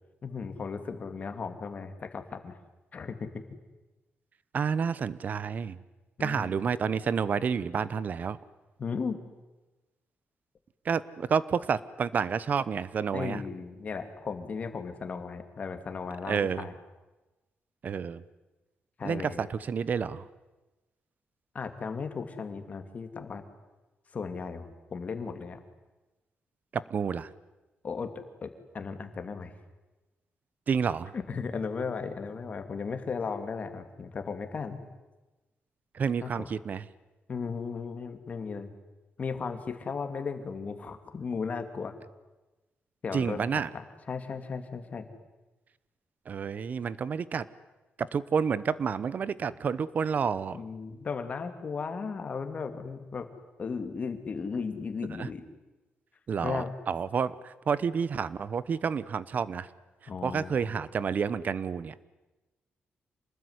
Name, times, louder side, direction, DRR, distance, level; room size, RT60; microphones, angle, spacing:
voice 1, 0.2-2.5 2.9-3.3 6.2-6.5 8.8-9.2 13.1-16.7 19.0-19.4 21.5-23.4 24.1-25.6 27.8-28.1 28.4-29.5 31.1-34.8 36.2-36.5 37.3-38.7 39.2-41.9 43.0-43.4 43.7-45.0 50.5-53.3 53.6-55.5 56.4-56.7 60.1-60.7, left 5 dB, 35° left, 8 dB, 2.5 m, -36 dB
voice 2, 4.5-5.8 6.2-8.4 10.8-13.4 16.2-16.7 17.8-18.2 19.0-20.3 26.7-27.3 30.7-31.1 35.9-36.8 43.1-43.7 46.3-47.5 48.0-50.6 55.2-55.3 56.3-59.7 60.2-61.9, right 6 dB, 45° right, 18 dB, 0.9 m, -29 dB
27.5 x 20.0 x 9.7 m, 1.1 s
wide cardioid pair, 165°, 4 cm